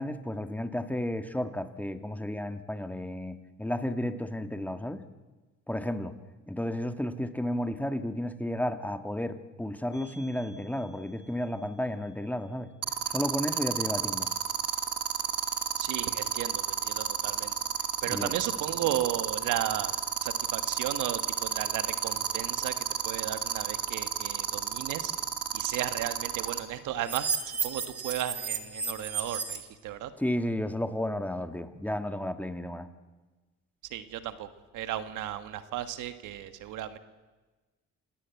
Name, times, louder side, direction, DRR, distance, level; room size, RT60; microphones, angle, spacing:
voice 1, 0.0-5.0 5.7-6.1 6.5-12.7 13.1-14.3 18.1-18.3 30.2-32.9, left 1 dB, 5° left, 8 dB, 1.6 m, -32 dB
sound 1, 9.9-10.2 12.8-26.6 27.0-29.6, right 8 dB, 50° right, 2.3 m, -30 dB
voice 2, 15.8-17.5 18.0-19.9 20.2-22.7 23.0-25.1 25.5-27.4 27.6-30.1 33.9-34.5 34.7-37.0, right 11 dB, 90° right, 10 dB, 1.5 m, -34 dB
27.5 x 18.0 x 8.3 m, 1.3 s
cardioid pair, 90°, 30 cm